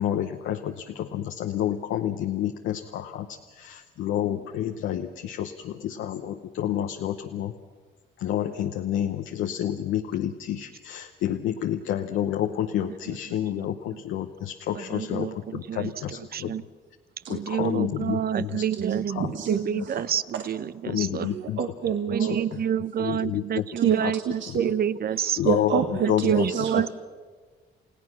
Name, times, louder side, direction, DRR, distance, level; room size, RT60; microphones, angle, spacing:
voice 1, 0.0-7.5 8.2-16.5 17.3-18.6 19.1-19.3 19.8-19.9 20.9-21.6 22.2-22.4 23.0-23.6 24.5-24.6 25.4-26.5, left 11 dB, 85° left, 4 dB, 0.9 m, -29 dB
voice 2, 13.0-13.7 14.7-16.6 17.3-21.3 22.1-25.4 26.2-26.9, right 9 dB, 50° right, 17 dB, 0.8 m, -29 dB
voice 3, 18.7-20.0 21.2-22.4 23.8-24.8 25.4-26.9, right 8 dB, 70° right, 5 dB, 1.4 m, -26 dB
29.5 x 16.5 x 6.2 m, 1.4 s
cardioid pair, 90°, 20 cm